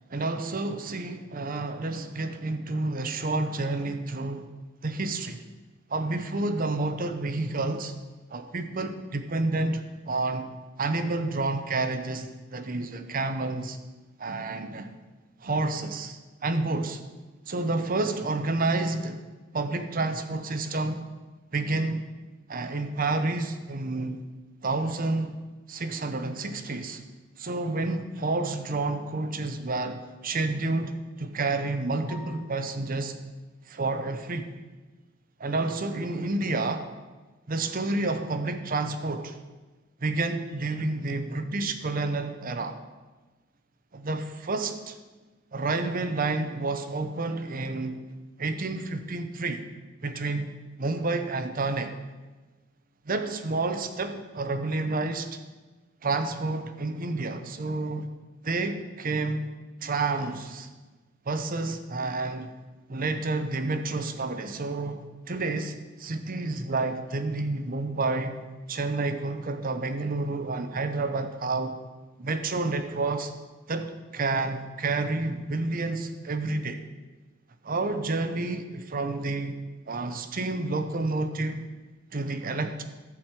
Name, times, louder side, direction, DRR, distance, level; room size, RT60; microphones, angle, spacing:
voice 1, 0.1-4.5 4.8-5.4 5.9-7.9 8.3-10.5 10.8-13.8 14.2-15.0 15.4-17.0 17.5-19.2 19.5-21.1 21.5-22.1 22.5-24.2 24.6-25.4 25.7-27.0 27.4-33.2 33.7-34.5 35.4-36.9 37.5-39.4 40.0-42.8 43.9-45.0 45.5-48.0 48.4-49.6 50.0-51.9 53.1-55.4 56.0-58.1 58.4-59.5 59.8-60.7 61.3-62.5 62.9-68.4 68.7-71.8 72.2-73.3 73.7-76.8 77.6-81.7 82.1-82.8, right 3 dB, 45° right, 8 dB, 0.8 m, -29 dB
sound 1, 32.1-33.1, left 2 dB, 10° right, 0.9 m, -48 dB
11.0 x 4.6 x 8.2 m, 1.3 s
head